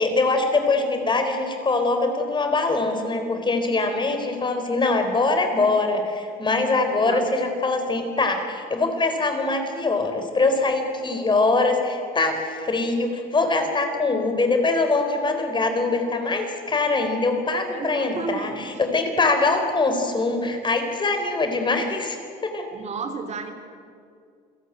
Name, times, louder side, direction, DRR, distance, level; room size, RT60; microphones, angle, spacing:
voice 1, 0.0-22.2 22.4-22.7, left 3 dB, 30° left, 6 dB, 4.1 m, -23 dB
voice 2, 6.9-7.3 17.7-18.7 22.7-23.5, right 5 dB, 40° right, 6 dB, 2.7 m, -33 dB
28.0 x 17.0 x 9.0 m, 2.3 s
cardioid pair, 110°, 17 cm